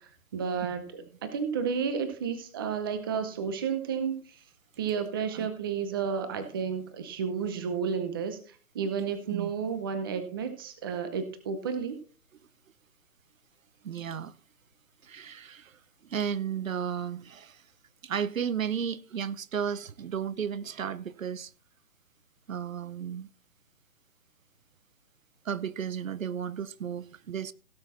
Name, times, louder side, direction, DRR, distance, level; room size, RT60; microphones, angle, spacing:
voice 1, 0.3-4.2 4.8-8.4 8.7-12.0, right 6 dB, 15° right, 0.7 m, -31 dB
voice 2, 13.8-14.3 15.0-15.8 16.1-17.6 18.0-21.5 22.5-23.3 25.4-27.5, right 8 dB, 65° right, 0.8 m, -33 dB
17.0 x 6.1 x 4.2 m
hypercardioid pair, 155°, 43 cm